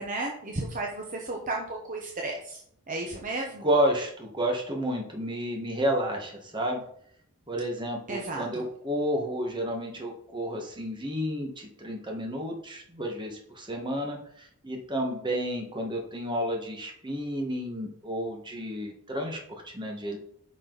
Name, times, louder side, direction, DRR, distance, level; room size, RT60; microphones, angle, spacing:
voice 1, 0.0-2.6 2.9-3.7 8.1-8.6, right 2 dB, 35° right, 0 dB, 1.0 m, -33 dB
voice 2, 3.6-6.8 7.5-20.2, equal, 20° right, 1 dB, 1.6 m, -31 dB
9.3 x 6.0 x 4.1 m, 0.65 s
head